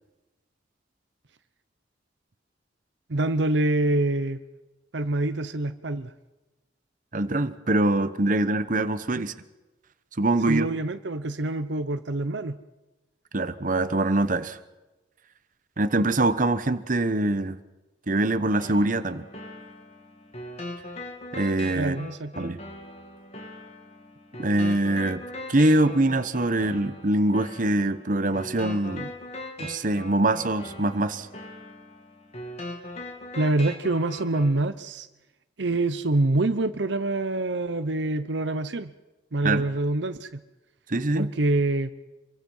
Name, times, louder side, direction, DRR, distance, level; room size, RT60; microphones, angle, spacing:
voice 1, 3.1-4.4 4.9-6.1 9.2-9.3 10.5-12.6 21.7-22.5 33.4-35.1 35.6-38.9 39.3-40.4 41.1-41.9, right 2 dB, 70° right, 10 dB, 0.9 m, -26 dB
voice 2, 7.1-9.3 10.2-10.7 13.3-14.6 15.8-17.6 18.1-19.3 21.3-22.0 22.4-22.6 24.4-25.2 25.5-29.1 29.6-31.3 39.4-39.6 40.9-41.3, right 2 dB, 45° right, 11 dB, 1.0 m, -24 dB
sound 1, 18.6-34.6, left 1 dB, 35° left, 2.5 m, -40 dB
26.5 x 23.0 x 5.6 m, 1.1 s
head